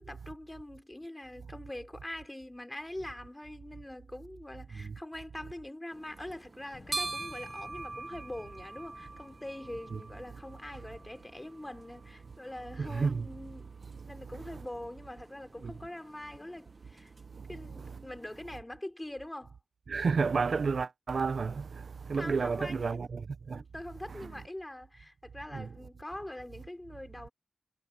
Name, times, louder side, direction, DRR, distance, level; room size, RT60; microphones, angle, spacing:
voice 1, 0.0-17.1 17.5-19.6 22.2-23.0 23.5-27.3, left 1 dB, 15° left, 3.4 m, -43 dB
sound 1, 5.9-18.4, right 3 dB, 45° right, 1.4 m, -45 dB
sound 2, 6.7-11.9 12.5-13.3, left 4 dB, 60° left, 7.2 m, -57 dB
voice 2, 12.8-13.2 15.6-15.7 17.4-17.5 19.9-23.6 25.5-25.7, right 5 dB, 80° right, 0.6 m, -31 dB
wide cardioid pair, 105°, 0 cm